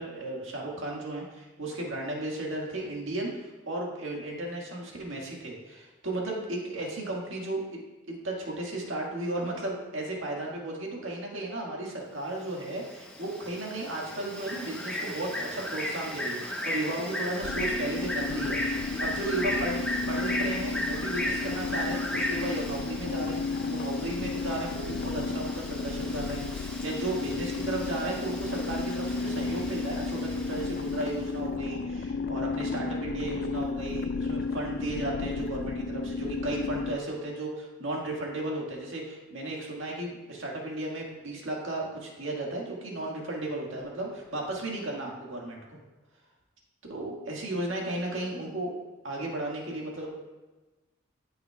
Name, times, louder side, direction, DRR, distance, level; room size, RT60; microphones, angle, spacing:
voice 1, 0.0-7.8 8.1-19.8 20.1-23.4 23.7-45.8 46.9-48.7 49.0-50.2, right 2 dB, 80° right, -2 dB, 1.7 m, -34 dB
Bird, 12.4-31.1, left 1 dB, 5° left, 0.8 m, -36 dB
sound 1, 17.4-37.0, left 4 dB, 55° left, 0.3 m, -33 dB
12.5 x 5.6 x 2.3 m, 1.2 s
head